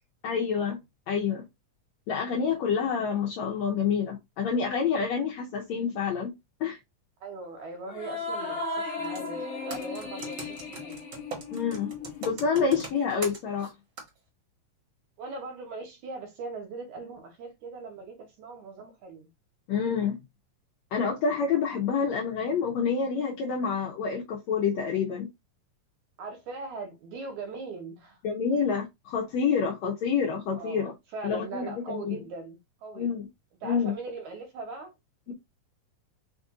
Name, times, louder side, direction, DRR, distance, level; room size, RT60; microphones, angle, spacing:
voice 1, 0.2-0.8 1.1-1.4 2.1-6.3 6.6-6.8 11.5-11.9 12.2-13.7 19.7-20.2 20.9-25.3 28.2-30.9 31.2-32.2 33.0-33.3 33.6-33.9 35.3-35.4, left 6 dB, 75° left, 1.6 m, -28 dB
voice 2, 7.2-11.0 15.2-19.3 26.2-28.2 30.5-33.1 33.6-34.9 35.3-35.4, right 3 dB, 65° right, 2.3 m, -40 dB
sound 1, 7.9-12.6, left 3 dB, 55° left, 1.5 m, -36 dB
Computer keyboard, 9.0-9.3 9.7-13.7 14.0-14.1, right 4 dB, 45° right, 1.6 m, -40 dB
5.2 x 2.6 x 3.6 m
omnidirectional pair, 4.0 m